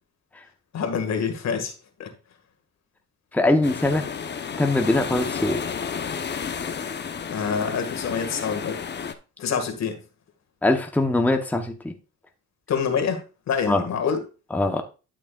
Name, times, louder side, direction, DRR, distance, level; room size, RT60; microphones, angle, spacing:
voice 1, 0.7-1.7 2.0-2.1 7.3-8.8 9.4-10.0 12.7-14.2, left 6 dB, 60° left, 1.8 m, -26 dB
voice 2, 3.3-4.1 4.6-5.6 10.6-11.9 13.7-13.8 14.5-14.8, left 2 dB, 5° left, 0.9 m, -22 dB
sound 1, 3.6-9.1, left 6 dB, 35° left, 0.8 m, -31 dB
11.5 x 6.1 x 2.4 m
cardioid pair, 90°, 30 cm